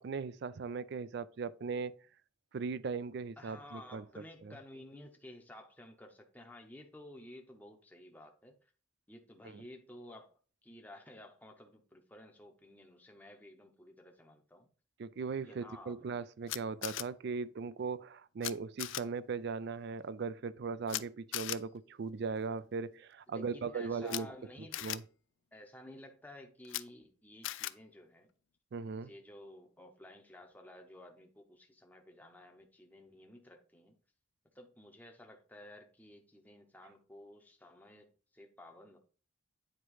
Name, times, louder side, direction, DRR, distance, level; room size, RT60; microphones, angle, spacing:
voice 1, 0.0-1.9 2.5-4.0 9.4-9.6 15.0-24.3 24.8-25.0 28.7-29.1, right 5 dB, 55° right, 0.4 m, -38 dB
voice 2, 3.4-8.7 9.1-10.3 10.6-14.7 15.4-16.0 23.3-24.9 25.5-28.3 29.0-34.0 34.5-39.0, left 1 dB, 10° left, 0.7 m, -53 dB
Camera, 16.5-17.0 18.4-18.5 18.8-19.0 20.9-21.0 21.3-21.6 24.0-24.2 24.7-25.0 26.6-26.8 27.4-27.7, left 15 dB, 70° left, 0.3 m, -37 dB
8.8 x 3.0 x 4.7 m
head